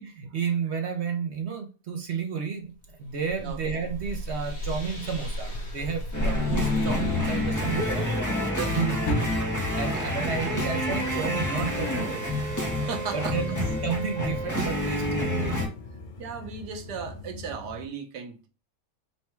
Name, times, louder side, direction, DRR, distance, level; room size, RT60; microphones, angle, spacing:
voice 1, 0.0-2.7 3.0-8.1 8.7-9.0 9.7-12.5 13.1-15.5, right 6 dB, 60° right, 0.8 m, -32 dB
sound 1, 2.8-8.2, equal, 75° left, 1.7 m, -34 dB
sound 2, 6.1-15.7, left 1 dB, 20° left, 0.5 m, -28 dB
voice 2, 8.6-8.9 12.8-13.4 16.2-18.5, right 6 dB, 80° right, 1.4 m, -36 dB
sound 3, 9.1-17.9, left 1 dB, 60° left, 1.1 m, -38 dB
4.1 x 2.2 x 4.3 m
omnidirectional pair, 1.8 m